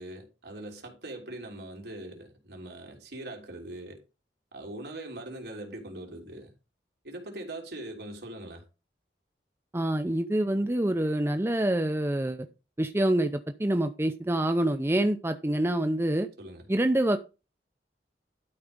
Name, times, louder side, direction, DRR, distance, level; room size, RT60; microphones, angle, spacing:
voice 1, 0.0-4.0 4.5-6.5 7.0-8.6 16.4-16.7, right 1 dB, 65° right, 3.3 m, -41 dB
voice 2, 9.7-12.5 12.8-16.3 16.7-17.2, right 1 dB, 15° right, 0.6 m, -26 dB
12.0 x 4.7 x 5.3 m
head